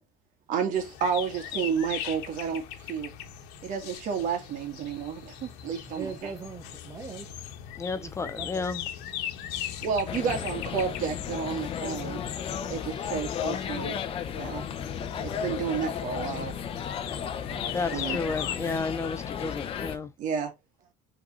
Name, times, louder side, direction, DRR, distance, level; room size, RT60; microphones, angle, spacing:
voice 1, 0.5-2.6 2.9-3.1 3.6-6.3 9.8-12.2 12.7-13.9 14.3-14.6 15.2-16.5 17.8-18.2 18.6-18.7 20.2-20.5, right 7 dB, 50° right, 1.9 m, -31 dB
sound 1, 0.7-18.8, left 10 dB, 70° left, 1.4 m, -40 dB
sound 2, 4.8-20.1, left 8 dB, 55° left, 1.3 m, -49 dB
voice 2, 5.9-7.3 7.9-8.7, right 4 dB, 20° right, 0.7 m, -40 dB
voice 3, 7.8-8.8 17.7-20.1, left 4 dB, 15° left, 0.5 m, -32 dB
sound 3, 10.1-20.0, left 8 dB, 35° left, 0.8 m, -34 dB
5.8 x 3.9 x 4.2 m
cardioid pair, 155°, 17 cm